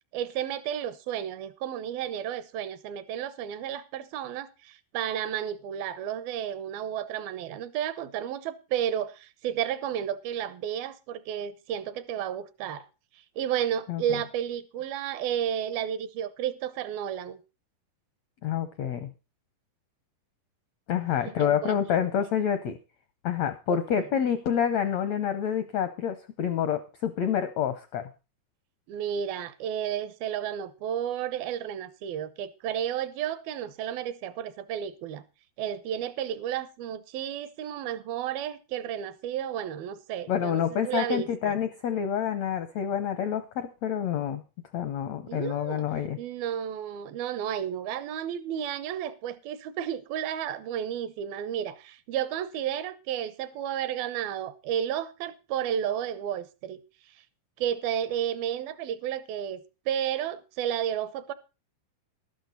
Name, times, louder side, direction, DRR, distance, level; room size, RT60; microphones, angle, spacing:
voice 1, 0.1-12.9 13.4-17.4 21.2-21.8 23.7-24.1 28.9-35.2 35.6-41.6 45.3-45.9 46.2-56.8 57.6-61.3, right 10 dB, 80° right, 2.8 m, -32 dB
voice 2, 18.4-19.1 20.9-22.8 23.2-28.1 40.3-44.4 44.7-46.2, left 8 dB, 80° left, 1.5 m, -28 dB
12.5 x 12.0 x 4.0 m
omnidirectional pair, 4.3 m